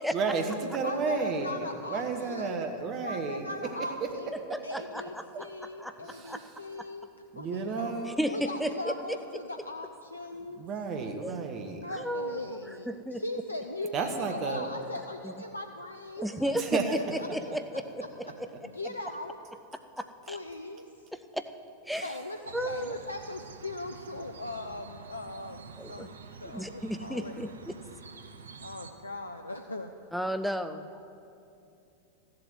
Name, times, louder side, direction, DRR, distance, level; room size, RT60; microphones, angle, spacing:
voice 1, 0.1-3.4 4.0-4.1 4.5-4.8 5.3-5.4 6.0-6.5 7.3-8.2 10.6-11.8 13.9-14.7 16.5-17.0, right 5 dB, 35° right, 5 dB, 1.1 m, -32 dB
voice 2, 0.8-2.7 3.0-4.3 4.6-7.9 8.3-10.6 11.8-16.4 16.9-17.5 18.6-19.4 20.3-21.1 22.0-27.3 28.6-29.9, left 2 dB, 80° left, 5 dB, 0.5 m, -39 dB
voice 3, 4.5-5.5 5.8-5.9 6.3-6.4 8.1-9.2 11.2-11.3 11.9-12.4 12.9-13.2 16.2-18.5 20.0-20.4 21.1-21.5 21.8-22.1 22.5-23.0 25.8-26.1 26.5-27.8 30.1-31.1, equal, ahead, 8 dB, 0.5 m, -34 dB
sound 1, 22.4-28.9, right 4 dB, 70° right, 0.8 m, -48 dB
13.5 x 7.7 x 7.6 m, 2.7 s
figure-of-eight pair, 90°, 0 cm